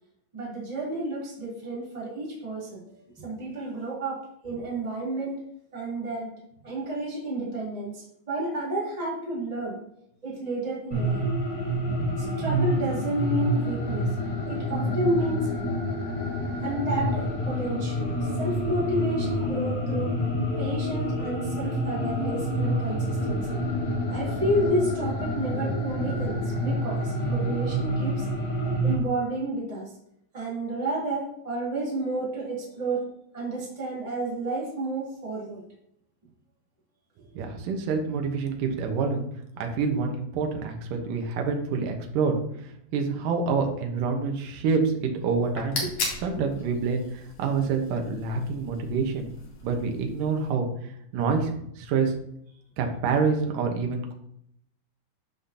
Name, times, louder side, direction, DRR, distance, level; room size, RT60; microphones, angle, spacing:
voice 1, 0.3-2.8 3.2-5.4 5.7-6.3 6.6-9.8 10.2-11.2 12.2-14.1 14.5-15.5 16.6-18.1 18.4-20.1 20.6-23.6 24.1-28.3 28.8-29.9 30.3-33.1 33.3-35.6 45.8-45.9 46.4-46.5, right 1 dB, 10° right, -6 dB, 2.8 m, -30 dB
sound 1, 10.9-29.0, equal, 30° left, 2.1 m, -28 dB
voice 2, 37.4-39.3 39.6-42.4 42.9-45.8 46.2-47.0 47.4-49.3 49.6-50.7 51.1-52.1 52.8-54.1, right 5 dB, 75° right, 3 dB, 2.7 m, -27 dB
sound 2, 45.3-50.5, left 2 dB, 50° left, 2.6 m, -38 dB
12.0 x 5.8 x 2.8 m, 0.72 s
omnidirectional pair, 4.1 m